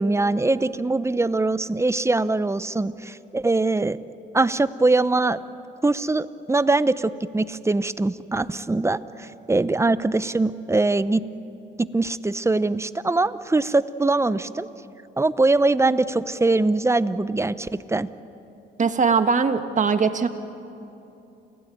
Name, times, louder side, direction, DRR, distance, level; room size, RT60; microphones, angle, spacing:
voice 1, 0.0-4.0 4.3-5.4 5.8-11.2 11.8-14.7 15.2-18.1, right 2 dB, 15° right, 15 dB, 0.7 m, -22 dB
voice 2, 18.8-20.3, right 5 dB, 40° right, 8 dB, 1.6 m, -20 dB
28.5 x 16.5 x 9.3 m, 2.9 s
cardioid pair, 90°, 20 cm